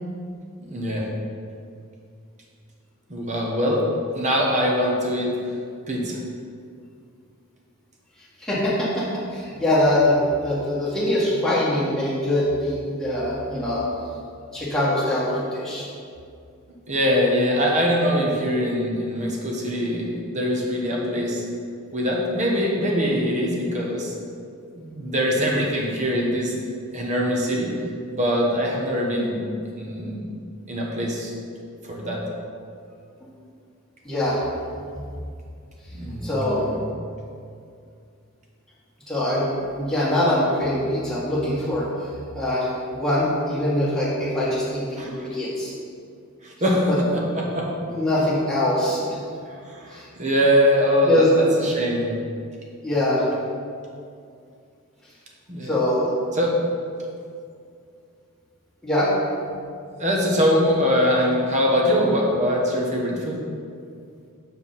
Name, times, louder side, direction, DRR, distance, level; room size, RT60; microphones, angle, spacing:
voice 1, 0.6-1.1 3.1-3.8 4.1-5.3 5.9-6.2 16.9-21.4 21.9-24.1 24.8-26.5 26.9-27.7 28.1-29.4 29.7-30.1 30.7-31.3 31.8-32.2 35.9-36.8 45.0-45.3 46.4-47.7 49.5-52.2 55.5-55.8 56.3-56.5 60.0-63.4, equal, 35° right, -2 dB, 1.1 m, -23 dB
voice 2, 8.4-9.0 9.3-13.8 14.5-15.8 34.0-34.4 34.9-35.0 36.2-36.6 39.1-41.9 42.3-45.7 46.9-47.0 47.9-49.2 49.9-50.1 51.0-51.3 52.8-53.2 55.6-56.0 58.8-59.1, left 1 dB, ahead, -10 dB, 1.8 m, -23 dB
5.8 x 4.6 x 5.6 m, 2.4 s
head